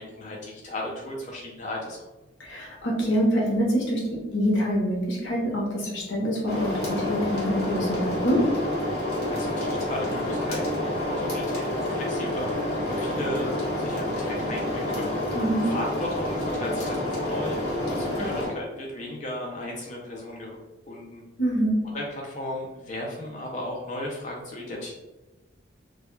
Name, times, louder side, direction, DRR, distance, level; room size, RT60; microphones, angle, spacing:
voice 1, 0.0-2.0 9.3-12.5 12.9-15.1 15.6-20.6 20.9-21.2 21.9-24.9, left 1 dB, 40° left, -2 dB, 0.4 m, -35 dB
voice 2, 2.4-8.4 15.3-15.7 21.4-21.8, equal, 85° left, -2 dB, 0.7 m, -25 dB
sound 1, 6.5-18.5, left 1 dB, 55° left, 1.0 m, -28 dB
2.2 x 2.1 x 3.0 m, 1.1 s
head